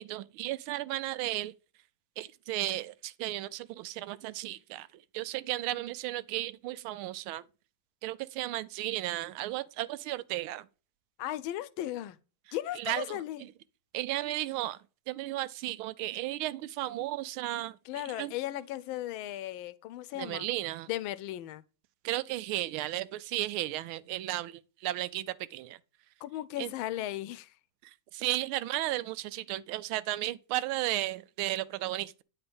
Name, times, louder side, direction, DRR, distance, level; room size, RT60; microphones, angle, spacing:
voice 1, 0.0-1.5 2.2-7.4 8.0-10.7 12.8-13.2 13.9-14.8 15.1-18.3 20.2-20.9 22.0-25.8 26.6-26.7 27.8-32.2, right 15 dB, 85° right, 1.4 m, -34 dB
voice 2, 11.2-12.2 12.5-13.4 17.8-20.5 20.9-21.6 26.2-27.5, left 13 dB, 80° left, 1.4 m, -36 dB
9.1 x 4.4 x 5.2 m
omnidirectional pair, 2.3 m